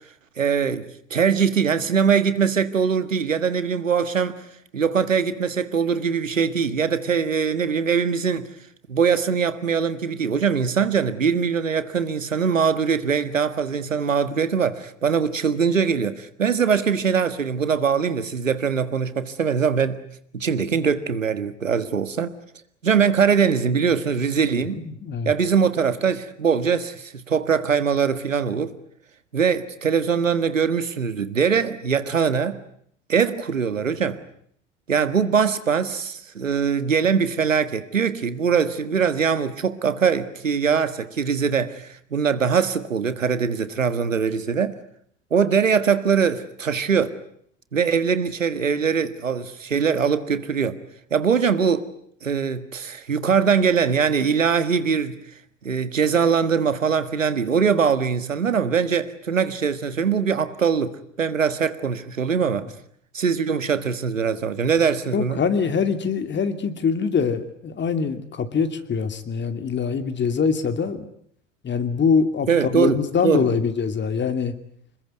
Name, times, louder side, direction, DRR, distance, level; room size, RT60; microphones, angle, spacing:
voice 1, 0.4-0.9 1.1-4.4 4.7-8.5 8.9-20.0 20.3-22.3 22.8-24.8 25.3-28.8 29.3-32.6 33.1-34.2 34.9-44.7 45.3-47.2 47.7-50.8 51.1-51.9 52.2-55.2 55.6-62.7 63.1-65.4 72.5-73.5, right 6 dB, 85° right, 1.7 m, -22 dB
voice 2, 24.7-25.3 65.1-71.0 71.6-74.5, left 6 dB, 30° left, 2.7 m, -23 dB
27.0 x 21.5 x 9.4 m
figure-of-eight pair, 75°, 38 cm